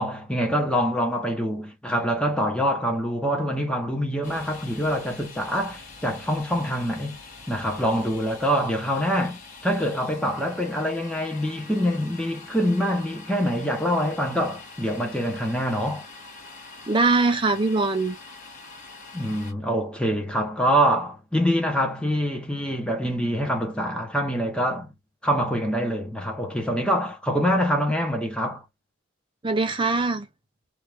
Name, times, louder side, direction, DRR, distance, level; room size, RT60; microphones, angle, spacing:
voice 1, 0.0-7.2 7.5-16.1 19.1-24.9 25.2-28.6, equal, 5° left, 0.9 m, -25 dB
Domestic sounds home sounds, 4.2-19.5, left 3 dB, 35° left, 1.5 m, -44 dB
voice 2, 16.9-18.2 29.4-30.3, right 3 dB, 25° right, 0.5 m, -22 dB
3.2 x 2.6 x 3.3 m
head